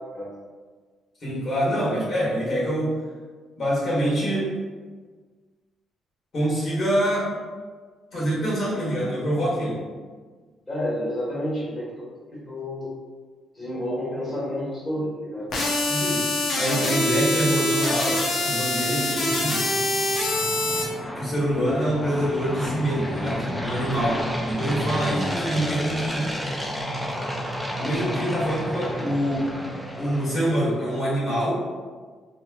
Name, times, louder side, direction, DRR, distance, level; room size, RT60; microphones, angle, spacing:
voice 1, 1.2-2.9 3.6-4.5 6.3-7.3 8.1-9.8 15.8-16.2 16.6-19.6 21.1-26.3 27.8-29.5 30.0-31.5, equal, 55° left, -8 dB, 1.5 m, -25 dB
voice 2, 10.7-11.9 12.5-12.9 13.5-15.5, left 1 dB, 20° left, -9 dB, 1.3 m, -29 dB
sound 1, 15.5-20.8, left 1 dB, 70° left, 0.7 m, -24 dB
sound 2, 18.4-30.7, equal, ahead, 0.5 m, -31 dB
3.0 x 2.8 x 2.4 m, 1.5 s
cardioid pair, 90°, 0 cm